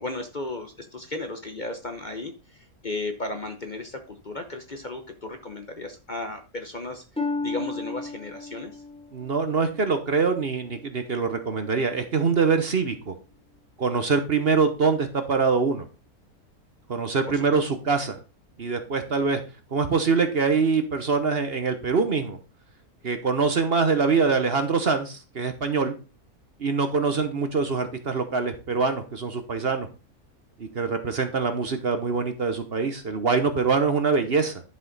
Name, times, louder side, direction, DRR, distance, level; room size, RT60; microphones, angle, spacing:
voice 1, 0.0-8.8 17.3-17.4, left 2 dB, 35° left, 6 dB, 0.9 m, -35 dB
Harp, 7.2-10.9 11.4-11.9 12.5-12.6, left 3 dB, 5° left, 0.4 m, -34 dB
voice 2, 9.1-13.1 13.8-15.9 16.9-18.2 18.6-19.4 19.7-22.4 23.0-26.0 26.6-29.9 30.6-34.6, right 4 dB, 45° right, 8 dB, 1.1 m, -24 dB
11.0 x 5.7 x 4.0 m, 0.32 s
omnidirectional pair, 1.6 m